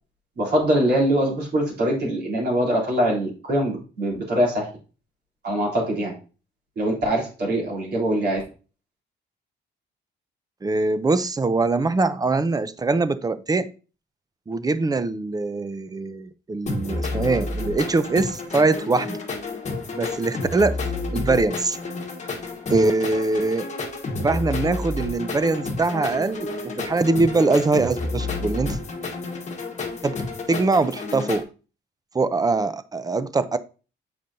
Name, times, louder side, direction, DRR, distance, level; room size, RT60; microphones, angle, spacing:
voice 1, 0.4-4.7 5.4-6.1 6.7-8.4, right 1 dB, 55° right, -4 dB, 3.4 m, -23 dB
voice 2, 10.6-13.7 14.5-19.2 19.9-20.7 21.1-21.8 22.7-23.7 24.2-26.5 26.8-28.8 30.0-30.2 30.5-31.4 32.1-33.6, right 3 dB, 20° right, 14 dB, 0.5 m, -22 dB
sound 1, 16.7-31.4, left 3 dB, 35° left, 1.2 m, -30 dB
7.7 x 4.9 x 2.7 m, 0.34 s
cardioid pair, 90°, 20 cm